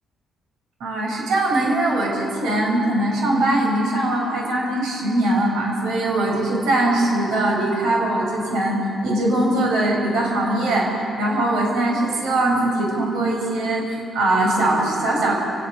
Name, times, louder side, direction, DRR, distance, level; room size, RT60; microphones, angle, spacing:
voice 1, 0.8-15.4, right 1 dB, 85° right, -1 dB, 7.0 m, -21 dB
29.0 x 17.5 x 6.9 m, 2.7 s
cardioid pair, 90°, 0 cm